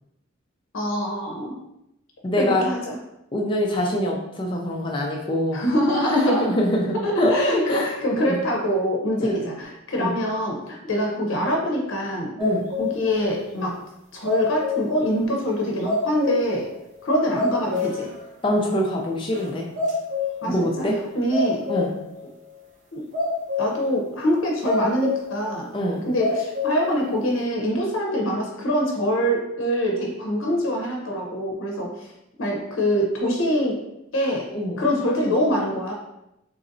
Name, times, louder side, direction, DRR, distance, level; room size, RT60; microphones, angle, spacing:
voice 1, 0.7-1.5 2.4-3.0 5.5-6.6 6.9-12.3 12.8-13.8 14.1-16.7 17.0-18.1 20.4-21.7 22.9-23.0 23.6-25.7 26.0-32.1 32.4-33.8 34.1-35.9, equal, 75° left, -1 dB, 0.7 m, -24 dB
voice 2, 2.2-2.6 3.3-5.6 6.0-7.4 7.7-8.4 9.2-9.4 10.0-10.1 12.4-12.7 18.4-19.7 20.4-21.0 21.7-21.9 25.7-26.1 34.5-34.8, left 1 dB, 25° left, -1 dB, 0.4 m, -24 dB
sound 1, 12.4-13.2 13.5-13.6 14.3-15.1 15.5-15.6 15.8-16.7 17.0-17.1 17.3-18.2 18.5-18.6 19.3-19.5 19.7-20.6 21.3-22.1 23.1-23.9 24.6-25.3 25.8-25.9 26.2-26.9 27.3-27.4, left 3 dB, 35° right, 0.7 m, -26 dB
3.9 x 3.0 x 2.6 m, 0.85 s
head